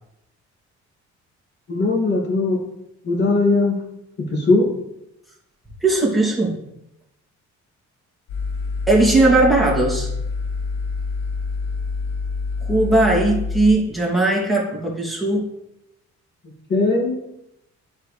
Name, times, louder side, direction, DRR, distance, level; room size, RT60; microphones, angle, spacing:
voice 1, 1.7-2.6 3.0-3.8 4.2-4.7 16.7-17.2, left 3 dB, 35° left, -1 dB, 2.5 m, -19 dB
voice 2, 5.8-6.6 8.9-10.1 12.7-15.5, right 2 dB, ahead, -4 dB, 2.8 m, -18 dB
sound 1, 8.3-13.7, left 4 dB, 75° left, 2.7 m, -26 dB
11.0 x 4.7 x 3.4 m, 0.82 s
cardioid pair, 90°, 30 cm